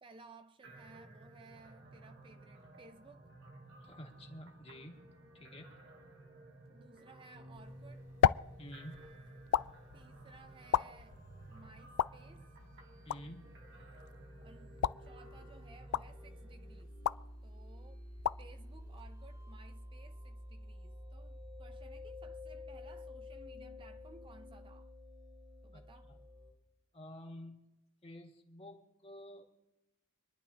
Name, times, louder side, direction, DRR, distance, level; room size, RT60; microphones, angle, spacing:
voice 1, 0.0-3.3 6.7-8.1 9.9-11.2 11.5-12.5 14.4-17.0 17.4-18.1 18.4-24.9 25.6-26.1, right 3 dB, 25° right, 0.4 m, -59 dB
sound 1, 0.6-16.8, right 2 dB, 55° right, 2.2 m, -56 dB
voice 2, 3.8-5.0 5.3-5.7 8.6-9.0 13.0-13.5 25.7-25.8 26.1-26.2 26.9-27.6 28.0-29.4, left 1 dB, 30° left, 1.8 m, -50 dB
sound 2, 7.3-26.5, left 1 dB, 85° right, 4.3 m, -51 dB
sound 3, 7.5-19.7, left 9 dB, 85° left, 0.3 m, -38 dB
26.0 x 11.0 x 2.8 m
head